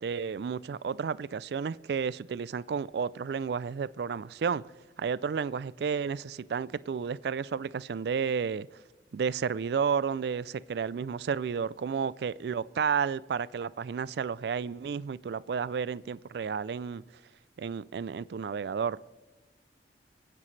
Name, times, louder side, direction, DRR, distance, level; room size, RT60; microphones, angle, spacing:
voice 1, 0.0-4.6 5.0-8.7 9.1-17.0 17.6-19.0, right 6 dB, 65° right, 20 dB, 0.3 m, -32 dB
26.0 x 9.6 x 3.2 m, 1.2 s
head